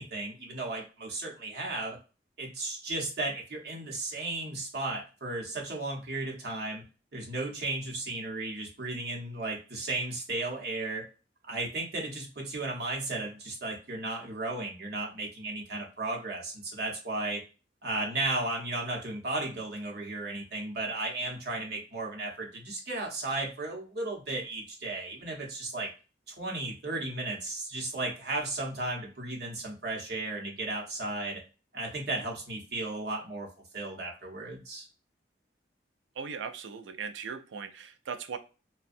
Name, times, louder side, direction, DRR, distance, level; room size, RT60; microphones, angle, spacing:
voice 1, 0.0-2.0 2.4-6.8 7.1-11.0 11.5-17.4 17.8-25.9 26.3-31.4 31.7-33.5 33.7-34.8, right 2 dB, 60° right, -1 dB, 0.9 m, -35 dB
voice 2, 36.2-38.4, right 6 dB, 85° right, 9 dB, 0.4 m, -39 dB
2.5 x 2.2 x 2.5 m, 0.34 s
head